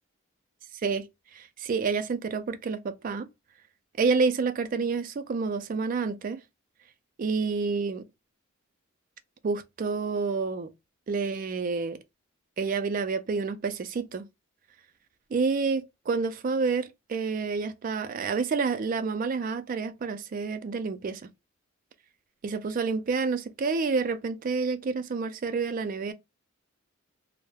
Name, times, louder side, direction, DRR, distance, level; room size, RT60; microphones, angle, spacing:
voice 1, 0.8-3.3 4.0-6.4 7.2-8.0 9.4-10.7 11.1-12.0 12.6-14.3 15.3-21.2 22.4-26.1, right 4 dB, 40° right, 0.3 m, -29 dB
2.2 x 2.0 x 3.1 m
head